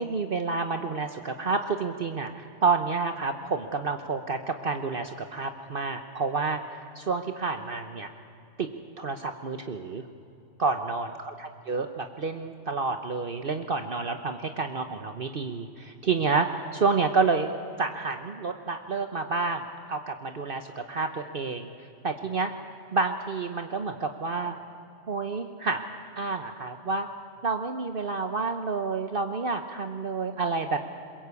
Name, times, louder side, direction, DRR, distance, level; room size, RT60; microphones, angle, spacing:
voice 1, 0.0-6.6 6.9-8.1 8.6-8.7 9.0-10.0 10.6-17.5 17.8-21.7 22.0-22.5 22.9-24.6 25.1-25.8 26.2-27.1 27.4-30.8, right 4 dB, 50° right, 7 dB, 1.1 m, -29 dB
22.0 x 22.0 x 8.3 m, 2.6 s
omnidirectional pair, 1.2 m